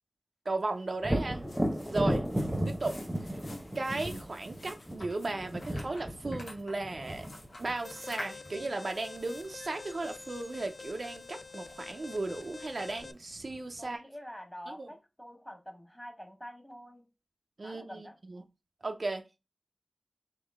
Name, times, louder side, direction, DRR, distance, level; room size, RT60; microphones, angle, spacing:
voice 1, 0.5-1.4 1.9-2.2 2.7-3.0 3.7-7.3 7.6-14.0 14.7-14.9 17.6-18.4 18.8-19.4, right 2 dB, 65° right, 0.5 m, -36 dB
Thunder, 1.0-8.7 12.3-12.4 12.9-13.8, equal, 10° right, 0.9 m, -35 dB
sound 1, 1.3-13.0, left 1 dB, 85° left, 1.1 m, -50 dB
Alarm, 7.8-13.1, left 4 dB, 60° left, 0.4 m, -47 dB
voice 2, 13.8-17.0 17.6-18.2, equal, 10° left, 1.4 m, -47 dB
3.7 x 3.0 x 3.5 m
cardioid pair, 40°, 0 cm